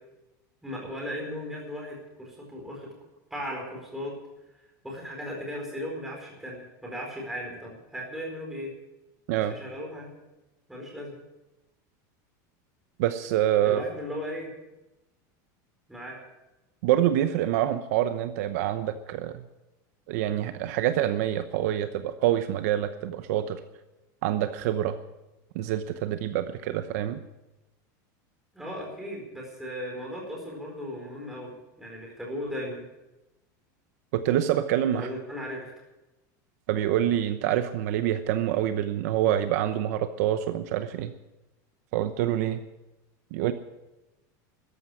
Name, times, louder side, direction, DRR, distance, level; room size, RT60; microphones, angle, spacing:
voice 1, 0.6-2.9 3.3-4.1 4.8-8.7 9.4-10.1 10.7-11.1 13.6-14.5 15.9-16.2 28.5-31.5 31.8-32.8 34.9-35.7, equal, 5° right, -1 dB, 4.5 m, -36 dB
voice 2, 13.0-13.8 16.8-19.4 20.1-23.6 24.2-25.0 25.5-27.2 34.1-35.1 36.7-41.1 41.9-42.6 43.3-43.5, right 12 dB, 55° right, 10 dB, 0.9 m, -26 dB
14.0 x 11.0 x 8.5 m, 0.98 s
supercardioid pair, 175°, 10 cm